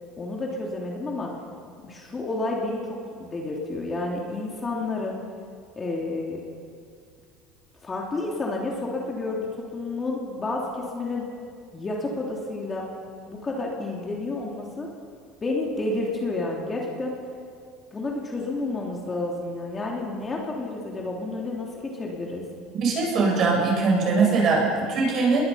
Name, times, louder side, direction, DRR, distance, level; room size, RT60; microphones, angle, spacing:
voice 1, 0.2-1.3 1.8-5.2 5.8-6.4 7.8-11.2 11.7-12.9 13.3-14.9 15.4-17.1 17.9-22.4, left 2 dB, 20° left, -2 dB, 3.0 m, -30 dB
voice 2, 22.8-25.4, right 4 dB, 40° right, -1 dB, 8.0 m, -21 dB
29.5 x 22.0 x 5.7 m, 2.2 s
cardioid pair, 155°, 0 cm